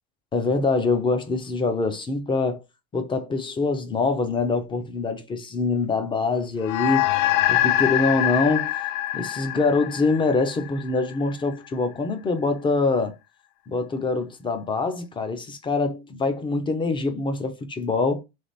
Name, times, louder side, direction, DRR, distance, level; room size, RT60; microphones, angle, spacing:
voice 1, 0.3-2.6 2.9-7.1 7.5-8.7 9.1-13.2 13.7-18.2, left 3 dB, 15° left, 0.5 m, -24 dB
sound 1, 6.6-11.3, left 14 dB, 80° left, 0.5 m, -24 dB
3.3 x 3.3 x 4.0 m
cardioid pair, 165°, 35 cm